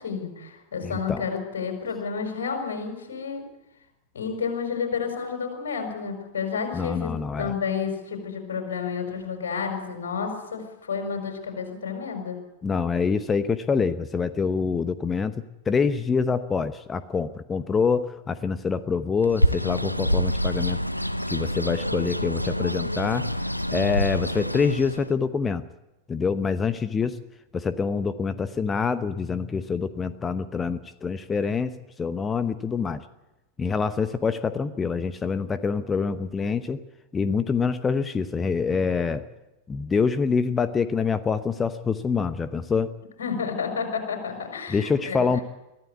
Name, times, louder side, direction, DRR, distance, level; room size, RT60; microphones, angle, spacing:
voice 1, 0.0-3.4 4.1-7.1 7.4-12.4 43.2-45.3, left 6 dB, 65° left, 4 dB, 5.7 m, -30 dB
voice 2, 0.8-1.2 6.7-7.5 12.6-20.8 21.3-23.3 23.7-25.6 26.1-27.2 27.5-31.7 32.0-33.0 33.6-36.8 37.1-39.2 39.7-42.9 44.7-45.4, left 5 dB, 15° left, 13 dB, 0.9 m, -26 dB
Bird, 19.2-25.1, equal, 90° left, 0.7 m, -27 dB
23.0 x 15.0 x 8.4 m, 0.96 s
figure-of-eight pair, 90°, 0 cm